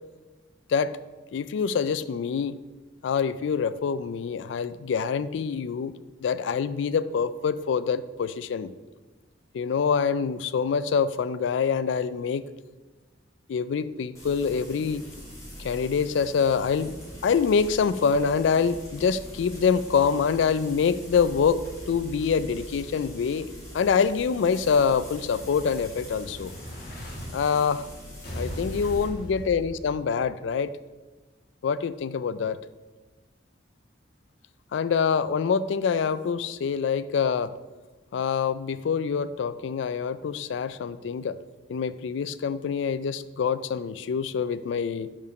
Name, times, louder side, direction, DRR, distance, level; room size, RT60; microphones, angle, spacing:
voice 1, 1.3-2.6 3.0-5.9 6.2-8.7 9.5-12.4 13.5-15.0 15.6-17.0 17.2-23.5 23.7-26.5 27.3-27.9 28.4-30.7 31.6-32.6 34.7-37.5 38.1-41.4 41.7-45.1, left 6 dB, 70° left, 15 dB, 0.3 m, -25 dB
Frying (food), 14.1-29.0, equal, 15° left, 2.3 m, -43 dB
Explosion, 24.5-27.2 28.2-30.3, equal, 55° left, 1.8 m, -40 dB
5.4 x 5.0 x 5.9 m, 1.2 s
head